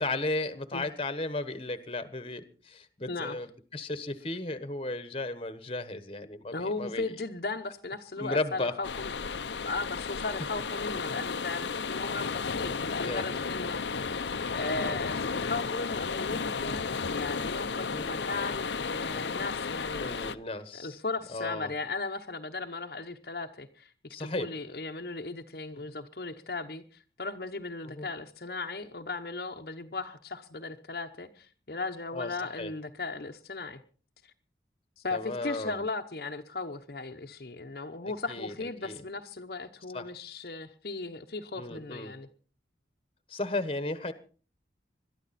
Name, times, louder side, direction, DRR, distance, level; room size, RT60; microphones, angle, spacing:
voice 1, 0.0-7.1 8.2-8.7 13.0-13.3 14.9-15.0 17.8-18.1 20.0-21.0 21.3-21.7 24.1-24.5 25.7-25.8 27.8-28.1 32.1-32.7 35.1-35.9 38.3-39.0 39.9-40.1 41.5-42.2 43.3-44.1, left 2 dB, 30° left, 1.3 m, -35 dB
voice 2, 6.5-13.8 14.5-20.1 20.7-23.9 24.2-26.8 27.2-33.8 34.2-34.3 35.0-42.3, left 3 dB, 60° left, 1.0 m, -37 dB
sound 1, 8.8-20.4, left 5 dB, 85° left, 0.8 m, -33 dB
22.0 x 13.0 x 4.2 m
head